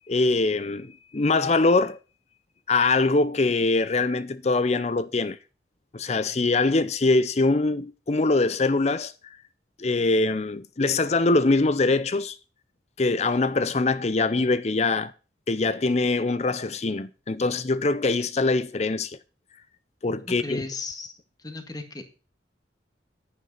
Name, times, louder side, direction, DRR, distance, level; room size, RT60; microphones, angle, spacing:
voice 1, 0.1-2.0 2.7-5.4 5.9-9.4 9.8-12.4 13.0-15.1 15.5-19.2 20.0-20.6, left 3 dB, 35° left, 0.5 m, -23 dB
voice 2, 20.2-22.0, left 3 dB, 20° left, 1.8 m, -36 dB
10.5 x 9.6 x 3.9 m
head